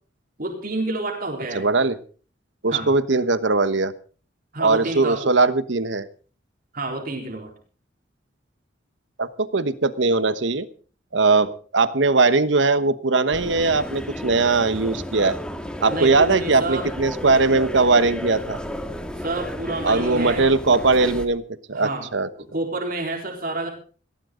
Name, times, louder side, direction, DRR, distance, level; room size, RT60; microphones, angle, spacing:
voice 1, 0.4-1.7 2.7-2.9 4.5-5.3 6.7-7.5 15.9-16.9 19.2-20.5 21.7-22.1 22.4-23.7, right 2 dB, 50° right, 1 dB, 4.1 m, -29 dB
voice 2, 1.5-2.0 2.6-3.9 4.6-6.1 9.2-10.7 11.1-15.4 15.8-18.6 19.8-21.4 21.7-22.3, right 3 dB, 80° right, 13 dB, 1.2 m, -20 dB
sound 1, 13.3-21.3, equal, 5° left, 1.9 m, -33 dB
19.0 x 17.5 x 3.9 m, 0.41 s
head